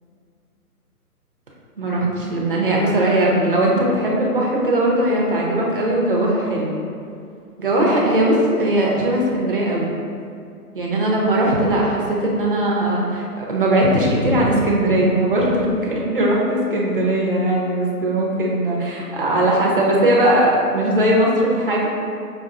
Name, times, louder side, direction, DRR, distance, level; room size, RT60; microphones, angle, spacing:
voice 1, 1.8-6.8 7.6-9.9 10.7-21.8, right 1 dB, 40° right, -3 dB, 0.4 m, -19 dB
4.8 x 2.3 x 2.3 m, 2.4 s
hypercardioid pair, 160°, 46 cm